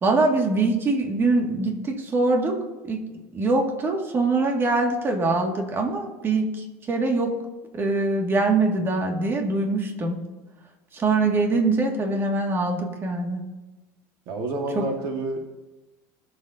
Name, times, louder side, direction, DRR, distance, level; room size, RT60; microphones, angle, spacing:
voice 1, 0.0-2.6 2.9-3.0 3.3-7.3 7.7-10.2 10.9-13.4 14.8-14.9, right 3 dB, 30° right, 2 dB, 2.0 m, -23 dB
voice 2, 14.3-15.6, right 2 dB, 60° right, 3 dB, 1.7 m, -29 dB
20.5 x 7.4 x 2.7 m, 1.1 s
supercardioid pair, 110°, 8 cm